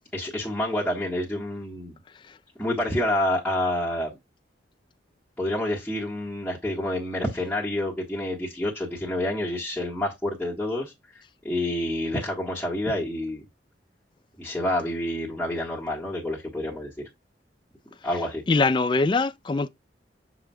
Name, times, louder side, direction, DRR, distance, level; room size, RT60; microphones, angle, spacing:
voice 1, 0.1-2.0 2.6-4.1 5.4-10.9 11.4-13.4 14.4-16.9 18.0-18.4, left 1 dB, 5° left, 1.6 m, -28 dB
voice 2, 18.5-19.7, left 3 dB, 25° left, 0.3 m, -22 dB
6.8 x 6.0 x 2.3 m
head